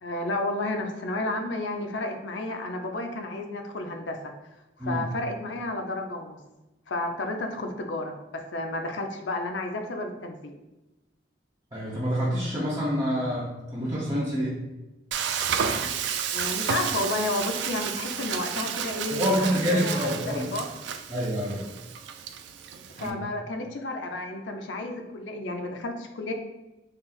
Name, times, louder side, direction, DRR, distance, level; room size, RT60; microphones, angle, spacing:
voice 1, 0.0-4.3 4.8-6.4 6.9-10.5 16.3-20.7 22.7-26.3, left 2 dB, 90° left, 4 dB, 0.5 m, -32 dB
voice 2, 11.7-14.6 19.1-20.5 21.1-21.7 23.0-23.2, equal, 25° right, -9 dB, 0.8 m, -27 dB
Frying (food), 15.1-23.1, right 7 dB, 75° right, 0.3 m, -31 dB
4.2 x 2.0 x 3.9 m, 1.0 s
head